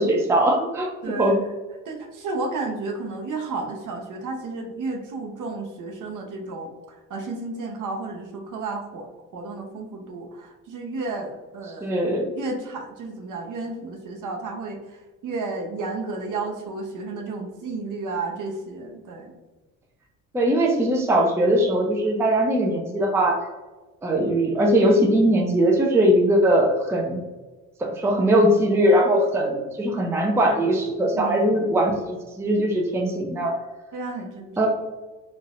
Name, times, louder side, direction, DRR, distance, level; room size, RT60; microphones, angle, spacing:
voice 1, 0.0-1.4 11.8-12.3 20.3-23.4 24.0-27.2 27.8-33.6 34.6-34.7, right 1 dB, 5° right, 1 dB, 0.5 m, -20 dB
voice 2, 1.0-1.4 1.8-9.1 9.3-11.9 12.3-19.3 31.1-31.7 33.9-34.7, right 3 dB, 50° right, 3 dB, 0.8 m, -32 dB
3.9 x 2.5 x 2.4 m, 1.2 s
supercardioid pair, 70°, 39 cm